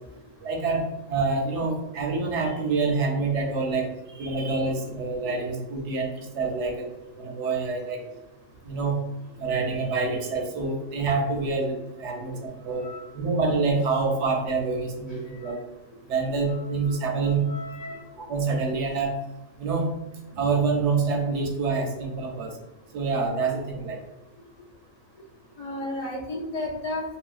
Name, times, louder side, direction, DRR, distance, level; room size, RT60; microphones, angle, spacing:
voice 1, 0.4-3.8 4.1-6.9 7.1-8.0 8.6-9.0 9.4-12.9 13.1-15.6 16.1-17.5 18.2-19.1 19.6-19.9 20.3-22.5 22.9-24.0, right 4 dB, 65° right, 1 dB, 0.8 m, -26 dB
voice 2, 12.8-13.1 15.1-15.2 15.4-15.5 16.5-16.6 17.2-18.0 25.6-27.0, left 1 dB, 55° left, -2 dB, 0.4 m, -34 dB
2.8 x 2.7 x 2.4 m, 0.99 s
omnidirectional pair, 1.4 m